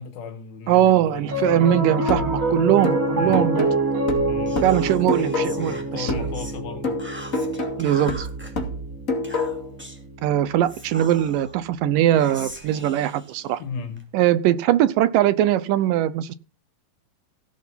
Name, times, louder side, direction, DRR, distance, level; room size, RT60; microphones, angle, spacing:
voice 1, 0.0-1.8 3.2-3.5 4.3-4.6 5.4-7.0 13.6-14.0, left 5 dB, 80° left, 3.7 m, -36 dB
voice 2, 0.7-3.7 4.6-6.1 7.8-8.3 10.2-13.6 14.1-16.3, right 12 dB, 75° right, 2.2 m, -21 dB
Piano, 1.2-11.7, right 2 dB, 45° right, 4.2 m, -28 dB
sound 1, 2.1-5.8 6.1-9.8, left 2 dB, 25° left, 2.4 m, -28 dB
Whispering, 4.5-6.6 7.0-8.5 9.2-10.1 10.7-11.6 12.2-14.0, equal, 5° right, 2.2 m, -41 dB
16.5 x 6.3 x 5.6 m
omnidirectional pair, 4.1 m